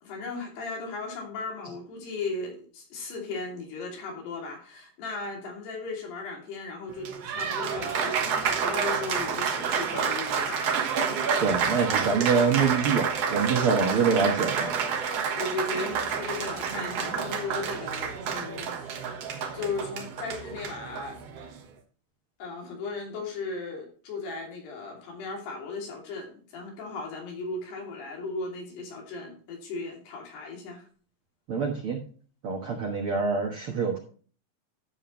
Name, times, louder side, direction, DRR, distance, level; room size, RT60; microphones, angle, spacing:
voice 1, 0.0-10.9 13.5-13.7 14.0-14.3 14.9-19.2 19.5-21.2 22.4-30.9, left 3 dB, 75° left, 0 dB, 4.9 m, -36 dB
Applause, 6.9-21.6, right 6 dB, 70° right, 1.5 m, -29 dB
voice 2, 11.4-14.7 31.5-32.0 32.4-34.0, right 5 dB, 85° right, 2 dB, 1.2 m, -25 dB
12.5 x 7.1 x 3.1 m, 0.42 s
omnidirectional pair, 4.7 m